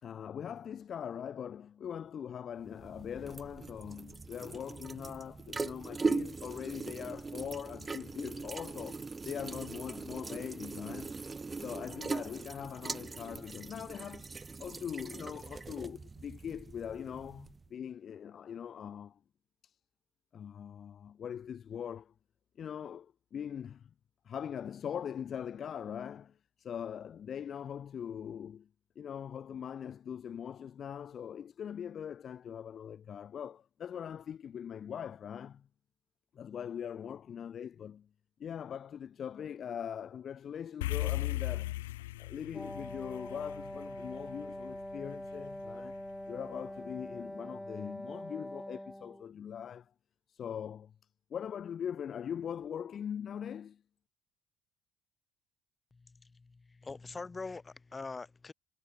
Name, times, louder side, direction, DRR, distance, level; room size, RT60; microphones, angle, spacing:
voice 1, 0.0-11.2 11.6-14.3 14.6-19.2 19.6-19.7 20.3-22.1 22.6-23.9 24.2-28.7 28.9-35.7 36.3-38.1 38.4-41.7 42.2-46.0 46.3-49.9 50.3-50.9 51.3-53.8, left 8 dB, 50° left, 1.5 m, -41 dB
sound 1, 2.6-17.7, right 4 dB, 25° right, 0.7 m, -40 dB
sound 2, 40.8-45.3, left 17 dB, 90° left, 0.3 m, -37 dB
Wind instrument woodwind instrument, 42.5-49.3, left 1 dB, 5° left, 4.4 m, -44 dB
voice 2, 55.9-58.5, left 3 dB, 25° left, 6.8 m, -44 dB
hypercardioid pair, 65°, 0 cm